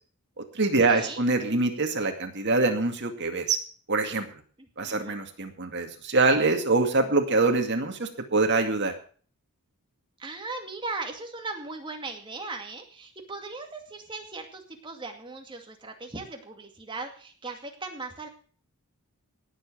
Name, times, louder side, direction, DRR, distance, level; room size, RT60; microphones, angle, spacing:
voice 1, 0.4-3.6 3.9-4.3 4.8-8.9, right 3 dB, 50° right, 5 dB, 2.2 m, -24 dB
voice 2, 0.9-1.2 4.6-5.2 10.2-18.3, right 3 dB, 20° right, 3 dB, 2.3 m, -38 dB
18.0 x 7.4 x 6.4 m, 0.43 s
head